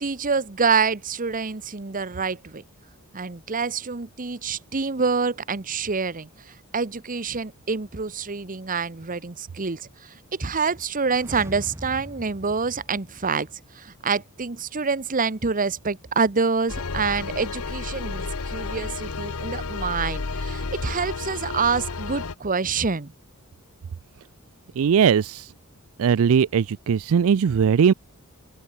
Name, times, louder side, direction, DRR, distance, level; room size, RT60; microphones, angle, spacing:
voice 1, 0.0-2.6 3.1-6.3 6.7-13.5 13.7-23.1, right 5 dB, 40° right, 1.1 m, -26 dB
sound 1, 10.9-13.8 14.1-14.2, equal, 10° right, 2.4 m, -41 dB
sound 2, 16.7-22.3, left 4 dB, 80° left, 1.0 m, -31 dB
voice 2, 24.8-25.5 26.0-27.9, right 7 dB, 70° right, 0.4 m, -19 dB
open air
head